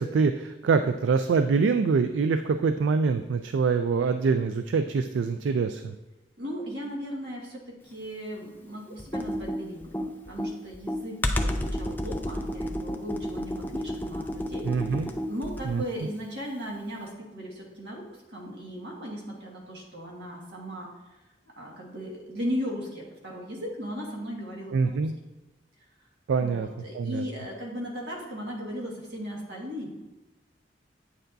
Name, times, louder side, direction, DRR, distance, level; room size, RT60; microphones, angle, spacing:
voice 1, 0.0-5.9 14.6-15.1 15.6-15.8 24.7-25.1 26.3-26.7 26.9-27.2, right 5 dB, 90° right, 9 dB, 0.3 m, -25 dB
voice 2, 6.4-20.9 21.6-25.1 26.4-29.9, equal, 70° right, -2 dB, 1.8 m, -37 dB
Computer keyboard, 9.0-15.8, left 1 dB, 10° left, 0.4 m, -31 dB
8.7 x 6.7 x 2.7 m, 1.0 s
head